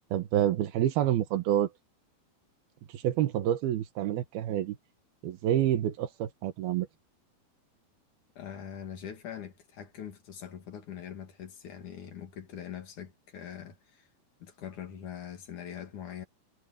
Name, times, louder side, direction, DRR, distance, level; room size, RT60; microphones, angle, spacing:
voice 1, 0.1-1.7 2.9-4.8 5.2-6.9, right 11 dB, 75° right, 3.1 m, -28 dB
voice 2, 8.3-14.1 14.4-16.3, left 9 dB, 55° left, 3.3 m, -43 dB
omnidirectional pair, 4.4 m